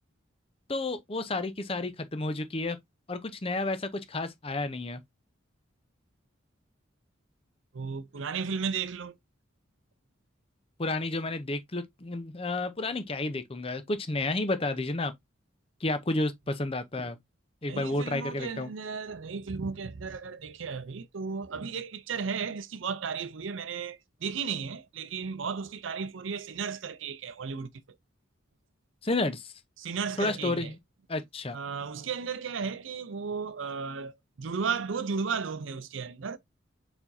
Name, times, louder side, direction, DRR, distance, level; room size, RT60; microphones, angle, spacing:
voice 1, 0.7-2.8 3.1-5.0 10.8-15.1 15.8-17.2 17.6-18.7 29.0-29.5 30.2-30.8 31.1-31.6, left 2 dB, 30° left, 0.7 m, -31 dB
voice 2, 7.7-9.1 17.7-27.7 29.8-30.7 31.5-36.4, right 5 dB, 75° right, 0.5 m, -34 dB
4.5 x 4.3 x 2.6 m
head